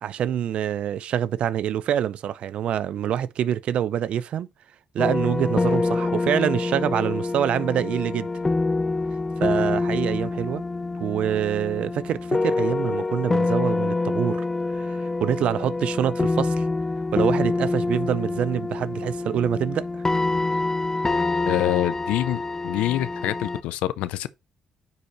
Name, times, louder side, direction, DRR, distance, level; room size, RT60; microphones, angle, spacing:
voice 1, 0.0-4.5 4.9-8.3 9.4-10.6 11.0-14.4 14.8-16.6 17.1-19.9, right 10 dB, 70° right, 0.5 m, -25 dB
sound 1, 5.0-23.6, left 3 dB, 25° left, 0.5 m, -26 dB
voice 2, 21.5-24.3, left 14 dB, 85° left, 0.4 m, -26 dB
9.4 x 4.4 x 3.1 m
supercardioid pair, 60°, 2 cm